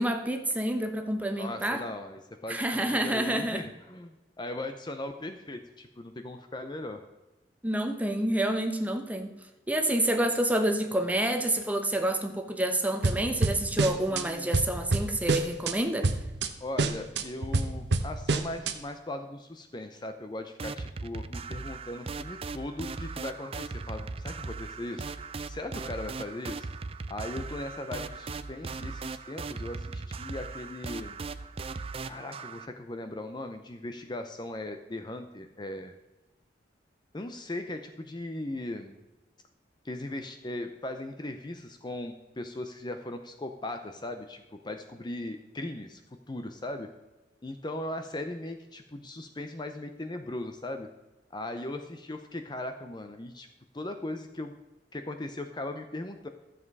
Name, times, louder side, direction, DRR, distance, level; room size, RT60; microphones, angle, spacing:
voice 1, 0.0-1.8 2.5-3.6 7.6-9.3 9.7-16.1, right 1 dB, 10° right, 5 dB, 1.0 m, -28 dB
voice 2, 1.4-7.0 14.1-14.5 16.6-25.1 25.5-26.7 27.1-31.2 32.0-35.9 37.1-39.0 39.8-46.0 46.3-46.9 47.4-50.9 51.3-53.5 53.7-54.5 54.9-56.3, left 1 dB, 25° left, 7 dB, 0.7 m, -38 dB
sound 1, 13.0-14.2 14.5-15.7 16.0-16.5 16.8-18.7, right 3 dB, 70° right, 0.9 m, -27 dB
sound 2, 20.6-32.7, right 4 dB, 35° right, 0.5 m, -38 dB
13.5 x 7.5 x 4.7 m, 1.1 s
head